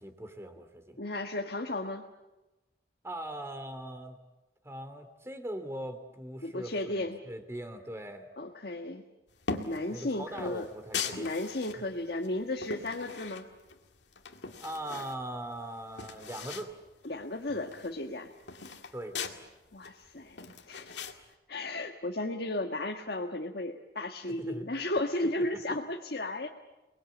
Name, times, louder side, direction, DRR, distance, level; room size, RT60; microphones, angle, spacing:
voice 1, 0.0-1.0 3.0-4.2 4.6-8.3 9.9-11.3 11.7-11.8 14.6-16.7 18.9-19.2 24.3-24.7 25.4-25.8, right 1 dB, 15° right, 9 dB, 2.7 m, -40 dB
voice 2, 1.0-2.0 6.4-7.2 8.4-9.0 9.6-10.7 11.2-13.5 17.0-18.3 19.7-20.4 20.7-21.0 21.5-26.5, left 1 dB, 60° left, 2 dB, 1.5 m, -34 dB
sound 1, 9.4-9.9 10.4-11.8 12.2-13.8 14.1-15.2 15.5-15.6 15.8-16.7 17.0-17.1 17.4-19.4 19.8-21.2, left 5 dB, 85° left, 2.1 m, -39 dB
29.0 x 20.5 x 8.6 m, 1.1 s
head